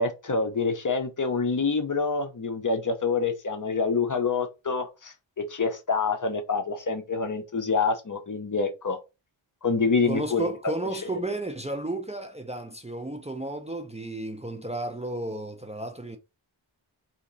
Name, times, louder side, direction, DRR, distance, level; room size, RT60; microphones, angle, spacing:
voice 1, 0.0-5.1 5.5-9.0 9.6-10.5, left 4 dB, 40° left, 0.7 m, -26 dB
voice 2, 10.0-16.2, right 1 dB, 15° right, 0.5 m, -33 dB
2.9 x 2.8 x 3.9 m
wide cardioid pair, 80°, 49 cm